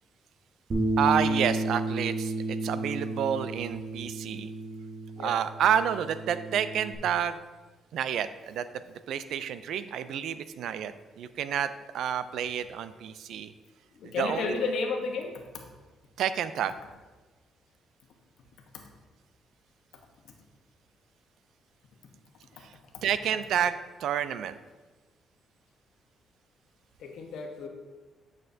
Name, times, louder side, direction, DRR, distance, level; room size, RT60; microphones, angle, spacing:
Bass guitar, 0.7-7.0, right 1 dB, 45° right, 1.4 m, -32 dB
voice 1, 1.0-4.5 5.2-7.4 7.9-8.7 9.1-13.5 14.0-14.6 16.2-16.8 22.6-22.7 23.0-24.6, right 9 dB, 75° right, 13 dB, 0.4 m, -29 dB
voice 2, 13.9-15.6 27.0-27.7, left 4 dB, 75° left, 3 dB, 1.0 m, -32 dB
8.7 x 6.4 x 2.7 m, 1.3 s
cardioid pair, 90°, 0 cm